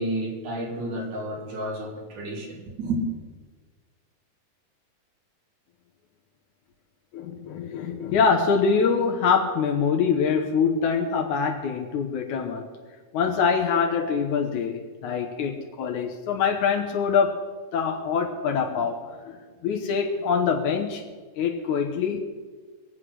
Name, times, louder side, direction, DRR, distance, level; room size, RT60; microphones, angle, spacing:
voice 1, 0.0-3.0, right 1 dB, 80° right, -1 dB, 4.3 m, -31 dB
voice 2, 7.1-12.7 13.1-17.4 17.7-21.0 21.4-22.2, left 6 dB, 80° left, 2 dB, 2.5 m, -24 dB
23.0 x 8.1 x 6.3 m, 1.5 s
omnidirectional pair, 3.4 m